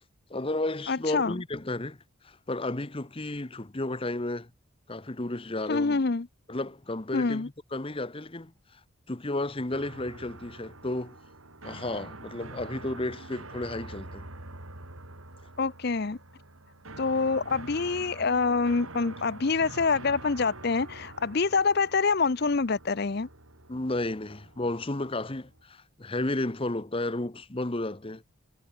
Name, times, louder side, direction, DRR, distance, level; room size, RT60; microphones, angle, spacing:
voice 1, 0.3-2.0 2.2-4.5 4.9-6.0 6.5-8.5 9.1-11.2 11.6-14.2 23.7-28.2, left 2 dB, 25° left, 1.0 m, -32 dB
voice 2, 0.9-1.4 5.7-6.3 7.1-7.5 15.6-16.2 17.0-23.3, left 4 dB, 50° left, 0.6 m, -26 dB
sound 1, 9.7-25.6, right 2 dB, 80° right, 4.5 m, -46 dB
head